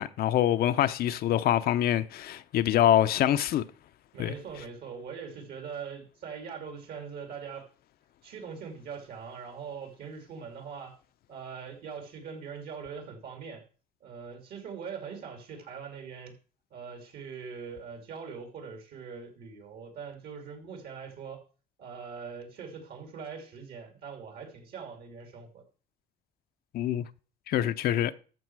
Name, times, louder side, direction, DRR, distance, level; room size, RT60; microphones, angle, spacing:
voice 1, 0.0-3.6 4.2-4.3 26.7-27.0 27.5-28.1, left 11 dB, 65° left, 0.6 m, -25 dB
voice 2, 4.1-7.7 8.2-11.0 11.3-13.6 14.0-16.4 16.7-21.4 21.8-25.6, right 6 dB, 70° right, 2.8 m, -42 dB
13.5 x 5.4 x 4.7 m
cardioid pair, 110°, 17 cm